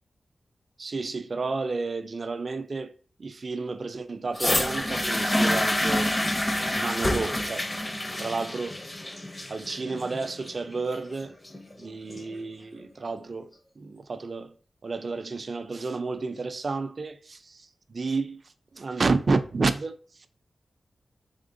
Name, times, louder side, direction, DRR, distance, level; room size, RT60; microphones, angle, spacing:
voice 1, 0.8-2.9 3.2-6.1 6.7-7.7 8.2-8.8 9.5-11.3 11.8-14.6 14.8-20.3, right 3 dB, 60° right, 0.4 m, -31 dB
sound 1, 4.4-12.4 13.2-13.3, left 1 dB, 30° left, 0.6 m, -28 dB
3.6 x 3.5 x 2.6 m
cardioid pair, 60°, 0 cm